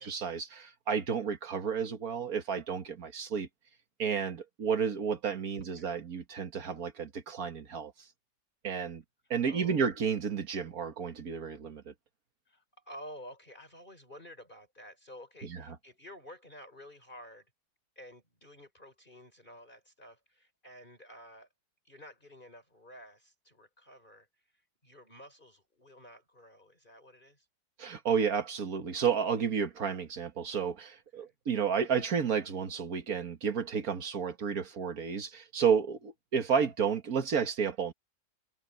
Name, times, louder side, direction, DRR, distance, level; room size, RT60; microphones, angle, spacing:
voice 1, 0.0-3.5 4.0-7.9 8.6-9.0 9.3-11.9 27.8-37.9, right 6 dB, 55° right, 2.0 m, -31 dB
voice 2, 9.5-10.0 12.5-17.5 18.0-21.5 21.8-27.5 31.1-31.4, equal, 25° left, 5.5 m, -51 dB
omnidirectional pair, 1.9 m